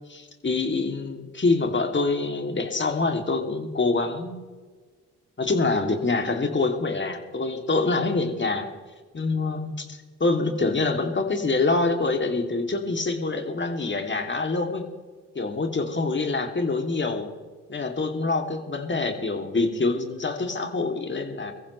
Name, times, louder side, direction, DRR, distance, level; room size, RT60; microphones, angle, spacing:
voice 1, 0.1-4.4 5.4-8.7 9.1-14.8 15.3-17.3 17.7-21.5, left 3 dB, 35° left, 4 dB, 2.8 m, -25 dB
23.0 x 15.0 x 3.3 m, 1.4 s
hypercardioid pair, 50°, 35 cm